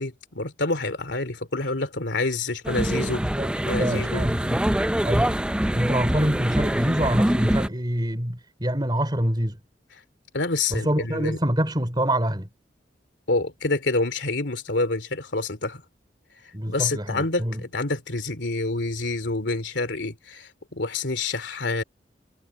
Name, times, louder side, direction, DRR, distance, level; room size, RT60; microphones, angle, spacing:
voice 1, 0.0-3.2 3.6-4.3 10.3-11.4 13.3-15.8 16.7-21.8, left 3 dB, 70° left, 2.9 m, -27 dB
sound 1, 2.6-7.7, right 1 dB, 5° right, 0.4 m, -24 dB
voice 2, 3.2-3.5 3.8-4.6 5.0-5.3 5.7-9.6 10.7-12.5 16.5-17.6, right 1 dB, 25° right, 3.7 m, -25 dB
head